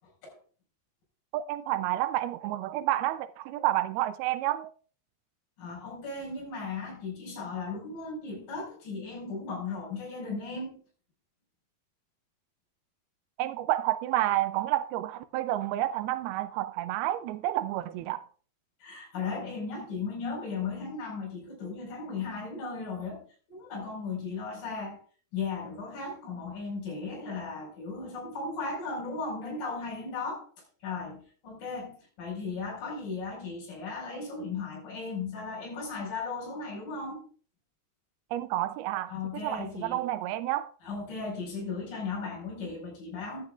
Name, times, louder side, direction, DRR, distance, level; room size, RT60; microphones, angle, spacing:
voice 1, 1.3-4.7 13.4-18.3 38.3-40.7, right 14 dB, 80° right, 2.4 m, -30 dB
voice 2, 5.6-10.8 18.8-23.2 23.5-25.0 25.3-30.4 30.8-37.2 39.1-40.0 40.8-43.4, left 4 dB, 55° left, 6.5 m, -36 dB
15.5 x 11.0 x 2.4 m
omnidirectional pair, 4.8 m